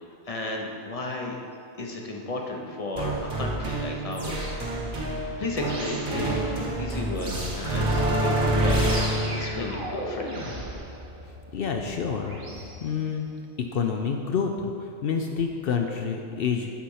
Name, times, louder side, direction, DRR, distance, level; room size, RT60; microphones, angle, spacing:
voice 1, 0.3-1.4 1.8-5.1 5.4-6.5 6.8-8.9 9.3-10.4, left 2 dB, 35° left, 1 dB, 0.8 m, -33 dB
sound 1, 3.0-12.7, right 1 dB, 50° right, 1.3 m, -28 dB
voice 2, 11.5-13.3 13.7-16.7, left 6 dB, 65° left, 3 dB, 0.7 m, -28 dB
9.9 x 4.2 x 5.5 m, 2.4 s
omnidirectional pair, 1.2 m